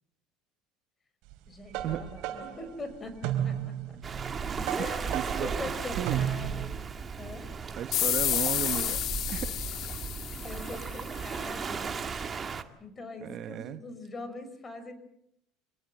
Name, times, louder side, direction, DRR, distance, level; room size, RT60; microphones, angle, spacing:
sound 1, 1.3-6.7, right 11 dB, 70° right, 3.9 m, -34 dB
voice 1, 1.5-4.0 4.8-6.8 7.1-7.5 10.4-12.0 12.8-14.9, left 3 dB, 25° left, 11 dB, 5.6 m, -42 dB
Waves surf, 4.0-12.6, right 5 dB, 30° right, 2.0 m, -36 dB
voice 2, 5.1-5.5 6.0-6.2 7.8-9.0 9.3-9.6 10.0-10.2 13.2-13.8, right 11 dB, 50° right, 12 dB, 1.2 m, -34 dB
sound 2, 7.9-11.2, left 12 dB, 55° left, 1.4 m, -30 dB
27.0 x 19.0 x 8.0 m, 0.73 s
supercardioid pair, 110°, 0 cm